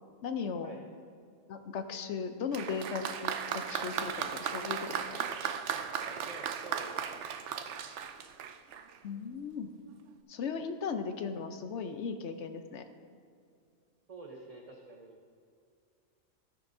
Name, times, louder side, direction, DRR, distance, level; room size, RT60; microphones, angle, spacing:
voice 1, 0.2-0.8 1.5-5.2 9.0-9.7 10.3-12.8, left 5 dB, 60° left, 8 dB, 0.8 m, -37 dB
Applause, 2.5-9.0 9.9-10.0, right 8 dB, 65° right, 0.8 m, -36 dB
voice 2, 6.0-7.1 14.1-15.2, right 3 dB, 35° right, 1 dB, 0.7 m, -48 dB
15.5 x 9.5 x 2.7 m, 2.4 s
omnidirectional pair, 1.5 m